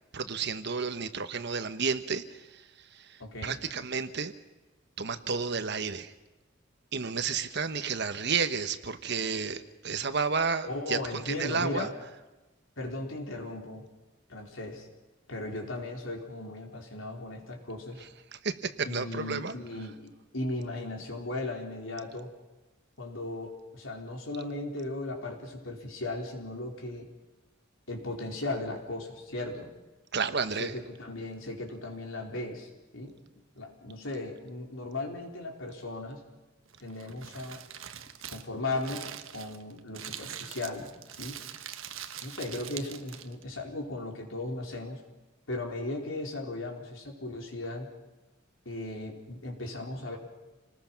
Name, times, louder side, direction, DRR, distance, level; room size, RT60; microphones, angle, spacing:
voice 1, 0.1-4.3 5.0-6.1 6.9-11.9 18.4-19.5 30.1-30.7, right 5 dB, 60° right, 10 dB, 1.2 m, -31 dB
voice 2, 3.2-3.6 10.6-11.9 12.8-13.9 14.3-14.9 15.3-18.0 18.9-19.9 20.3-22.3 23.0-27.1 27.9-29.7 30.5-33.1 33.5-36.2 36.8-37.6 38.3-39.1 39.3-40.9 41.2-41.4 42.2-45.0 45.5-47.9 48.6-50.2, left 2 dB, 80° left, 1 dB, 4.3 m, -37 dB
Crumpling crinkling, 36.7-43.4, right 9 dB, 90° right, 1.3 m, -43 dB
28.0 x 19.5 x 6.0 m, 1.1 s
head